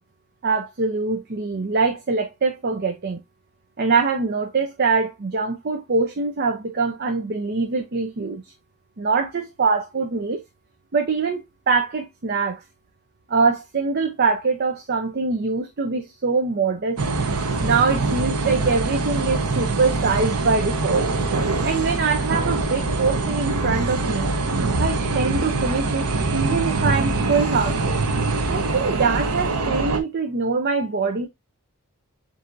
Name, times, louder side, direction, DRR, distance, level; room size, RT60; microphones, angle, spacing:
voice 1, 0.4-3.2 3.8-8.4 9.0-10.4 10.9-12.6 13.3-17.0 17.6-21.1 21.6-24.3 24.8-28.0 28.5-31.3, right 4 dB, 45° right, 0.6 m, -23 dB
sound 1, 17.0-30.0, right 3 dB, 90° right, 0.8 m, -24 dB
7.4 x 2.7 x 2.6 m
head